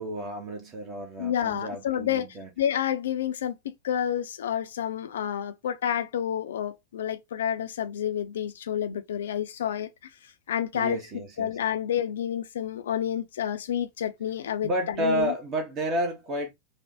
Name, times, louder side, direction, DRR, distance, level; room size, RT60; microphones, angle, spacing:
voice 1, 0.0-2.5 10.7-11.5 14.6-16.5, right 1 dB, 35° right, 0.8 m, -31 dB
voice 2, 1.2-9.9 10.5-11.0 11.4-15.3, left 9 dB, 60° left, 0.4 m, -29 dB
3.2 x 2.1 x 2.7 m
figure-of-eight pair, 90°, 0 cm